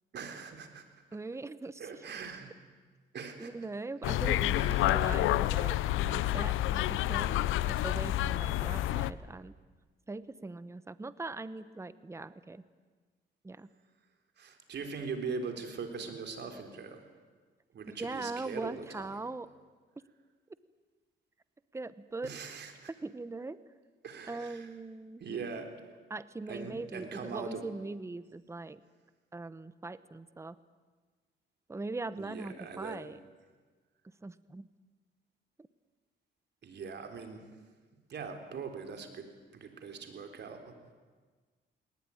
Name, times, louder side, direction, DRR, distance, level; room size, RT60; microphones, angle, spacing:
voice 1, 0.1-0.8 1.8-2.5 3.1-3.5 4.5-4.9 14.4-17.0 17.7-19.2 22.2-22.9 24.0-24.7 25.2-25.7 26.5-27.7 32.2-33.1 36.6-37.5 38.1-40.7, right 5 dB, 60° right, 5 dB, 3.9 m, -41 dB
voice 2, 1.1-1.8 3.4-7.4 7.7-9.5 10.1-12.6 13.4-13.7 17.9-19.5 21.7-22.4 23.0-23.6 24.3-25.2 26.1-28.8 29.3-30.6 31.7-33.2 34.2-34.7, right 3 dB, 15° right, 15 dB, 0.9 m, -41 dB
sound 1, 4.0-9.1, left 14 dB, 90° left, 0.7 m, -29 dB
19.5 x 19.5 x 9.9 m, 1.4 s
cardioid pair, 90°, 20 cm